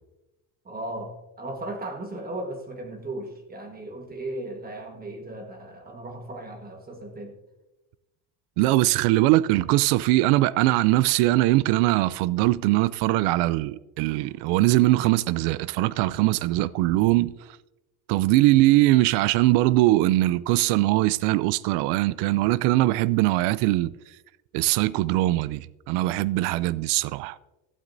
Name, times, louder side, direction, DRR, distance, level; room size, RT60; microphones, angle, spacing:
voice 1, 0.6-7.4, right 1 dB, 20° right, 1.4 m, -36 dB
voice 2, 8.6-17.3 18.1-23.9 24.5-27.4, right 17 dB, 80° right, 0.5 m, -21 dB
16.0 x 12.0 x 2.6 m
cardioid pair, 135°, 40 cm